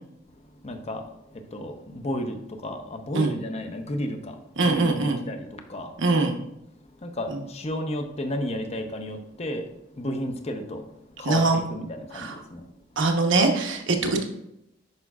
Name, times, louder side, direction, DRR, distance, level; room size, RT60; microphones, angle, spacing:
voice 1, 0.5-6.0 7.0-9.7 10.0-12.6 14.0-14.2, left 1 dB, 35° left, 6 dB, 0.7 m, -33 dB
voice 2, 4.6-5.2 6.0-6.3 7.3-7.4 11.2-11.6 12.1-12.3 13.0-14.2, right 3 dB, 65° right, 3 dB, 1.0 m, -22 dB
10.5 x 5.1 x 2.4 m, 0.82 s
head